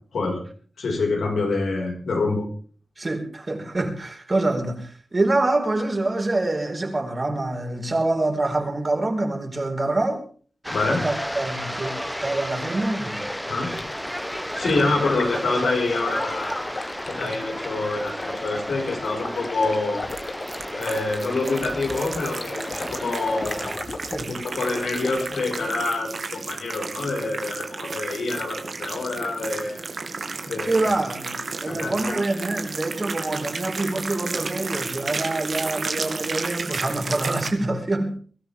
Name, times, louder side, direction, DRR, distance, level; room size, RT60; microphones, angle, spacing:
voice 1, 0.8-2.5 10.7-11.1 13.4-13.8 14.5-16.7 17.1-20.0 20.7-23.8 24.3-29.9 30.4-30.9 31.7-32.2, left 3 dB, 90° left, 5.5 m, -26 dB
voice 2, 3.0-10.2 10.9-13.3 14.6-14.9 17.2-17.3 24.1-24.4 30.6-38.2, right 2 dB, 40° right, 4.8 m, -26 dB
sound 1, 10.6-23.8, equal, 5° left, 0.9 m, -32 dB
Stream, 13.7-25.7, left 3 dB, 60° left, 2.3 m, -38 dB
sound 2, 20.1-37.5, right 4 dB, 70° right, 2.4 m, -33 dB
23.5 x 13.5 x 3.7 m
cardioid pair, 50°, 0 cm